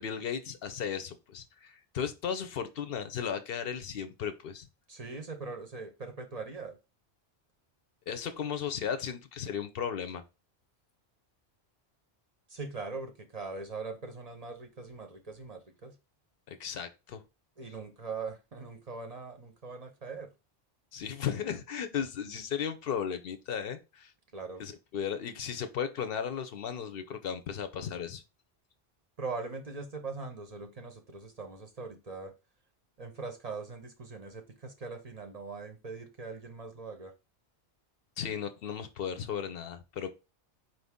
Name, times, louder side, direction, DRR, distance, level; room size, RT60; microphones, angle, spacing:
voice 1, 0.0-4.7 8.1-10.2 16.5-17.2 20.9-24.1 24.6-28.2 38.2-40.1, left 8 dB, 65° left, 0.7 m, -35 dB
voice 2, 4.9-6.8 12.5-15.9 17.6-20.3 24.3-24.6 29.2-32.3 33.0-37.1, right 4 dB, 45° right, 0.6 m, -41 dB
4.6 x 2.6 x 3.5 m
omnidirectional pair, 1.1 m